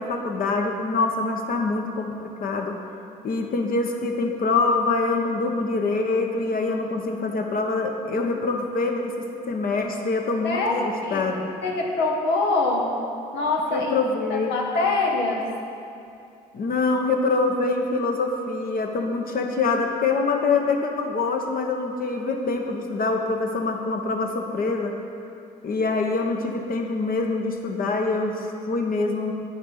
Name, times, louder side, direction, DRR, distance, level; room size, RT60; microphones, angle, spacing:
voice 1, 0.0-2.7 3.2-9.1 9.5-11.5 13.7-14.5 16.5-24.9 25.6-29.3, left 3 dB, 50° left, 3 dB, 1.1 m, -25 dB
voice 2, 10.4-11.3 11.6-13.0 13.3-13.9 14.3-15.5, left 3 dB, 70° left, 0 dB, 1.0 m, -24 dB
9.2 x 4.4 x 5.5 m, 2.6 s
hypercardioid pair, 55°, 19 cm